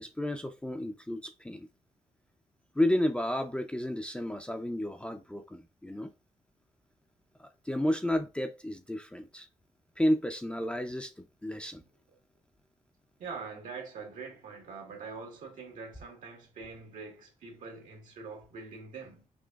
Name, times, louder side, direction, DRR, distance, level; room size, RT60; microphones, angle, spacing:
voice 1, 0.0-1.7 2.7-6.1 7.4-9.5 10.0-11.1 11.4-11.8, left 1 dB, 10° left, 0.5 m, -31 dB
voice 2, 13.2-19.3, right 4 dB, 75° right, 1.5 m, -44 dB
6.0 x 2.5 x 2.3 m
cardioid pair, 75°, 13 cm